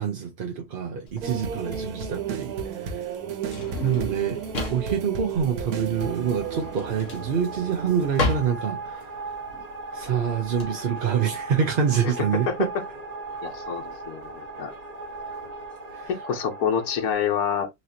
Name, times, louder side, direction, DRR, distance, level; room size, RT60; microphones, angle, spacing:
voice 1, 0.0-3.0 3.8-4.4 4.7-9.1 9.9-12.7 15.9-16.1, right 7 dB, 50° right, 0.7 m, -26 dB
Drawer open or close, 1.1-10.7, left 3 dB, 60° left, 1.5 m, -34 dB
sound 1, 1.2-9.2 9.6-9.8, right 7 dB, 90° right, 1.3 m, -34 dB
sound 2, 6.0-17.1, right 3 dB, 30° right, 1.1 m, -38 dB
voice 2, 13.4-14.7 16.1-17.7, left 8 dB, 85° left, 1.3 m, -27 dB
4.0 x 3.0 x 2.7 m
omnidirectional pair, 1.5 m